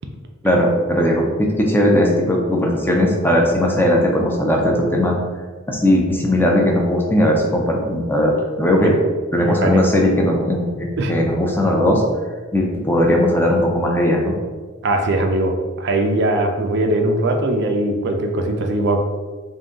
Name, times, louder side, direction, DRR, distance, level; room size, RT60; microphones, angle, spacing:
voice 1, 0.4-5.2 5.7-9.0 9.3-12.0 12.5-14.3, left 1 dB, 10° left, -1 dB, 0.5 m, -18 dB
voice 2, 9.4-9.8 11.0-11.1 14.8-15.5 15.8-19.0, right 2 dB, 55° right, 4 dB, 0.4 m, -20 dB
3.7 x 2.6 x 3.8 m, 1.4 s
head